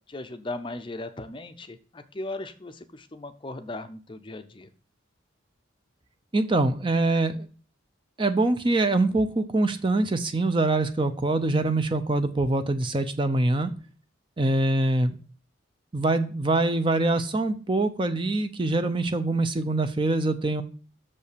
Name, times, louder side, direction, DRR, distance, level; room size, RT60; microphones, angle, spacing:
voice 1, 0.1-4.7, left 2 dB, 25° left, 9 dB, 0.6 m, -37 dB
voice 2, 6.3-7.5 8.2-13.7 14.4-15.2 15.9-20.6, right 2 dB, 25° right, 9 dB, 0.6 m, -24 dB
6.8 x 5.4 x 6.7 m, 0.40 s
head